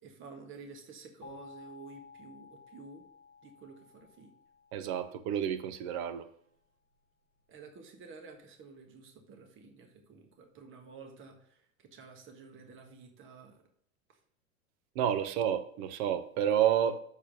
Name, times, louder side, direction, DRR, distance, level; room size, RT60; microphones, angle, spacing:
voice 1, 0.0-3.0 3.4-4.3 7.5-13.6 14.1-14.2, right 4 dB, 30° right, 4 dB, 1.6 m, -51 dB
sound 1, 1.2-6.0, left 6 dB, 80° right, 4.0 m, -55 dB
voice 2, 4.7-6.3 14.9-17.0, right 10 dB, 50° right, 11 dB, 1.0 m, -30 dB
7.2 x 4.3 x 6.7 m, 0.66 s
hypercardioid pair, 95°, 40 cm